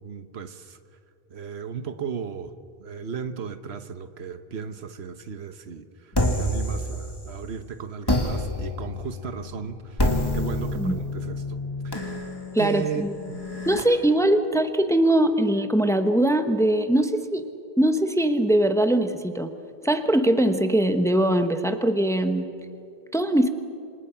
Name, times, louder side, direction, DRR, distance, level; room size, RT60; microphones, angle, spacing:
voice 1, 0.0-0.8 1.3-2.5 2.8-6.1 6.4-11.6 11.8-12.1 12.6-13.5, right 6 dB, 75° right, 10 dB, 1.3 m, -35 dB
sound 1, 6.1-7.5 8.1-13.8, left 1 dB, 20° left, 2.3 m, -28 dB
voice 2, 12.5-13.1 13.7-17.5 17.8-19.5 19.8-22.5 23.1-23.5, right 1 dB, 5° left, 8 dB, 1.0 m, -21 dB
28.0 x 26.0 x 5.8 m, 2.4 s
omnidirectional pair, 1.1 m